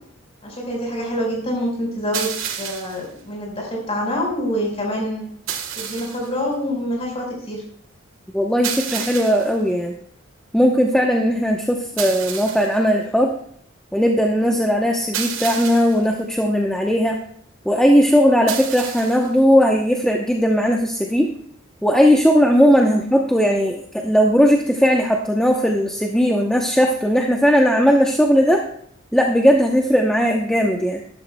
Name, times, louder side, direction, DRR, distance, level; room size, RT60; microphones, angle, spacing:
voice 1, 0.4-2.3 2.6-5.3 5.7-7.6, equal, 30° left, -1 dB, 4.4 m, -26 dB
sound 1, 2.1-3.1 5.5-6.3 8.6-9.6 12.0-12.8 15.1-16.1 18.5-19.3, right 8 dB, 85° right, 1.3 m, -30 dB
voice 2, 8.3-9.9 10.5-13.3 13.9-17.2 17.7-21.3 21.8-28.6 29.1-31.0, equal, 5° left, 0 dB, 0.7 m, -17 dB
13.5 x 12.0 x 2.2 m, 0.66 s
head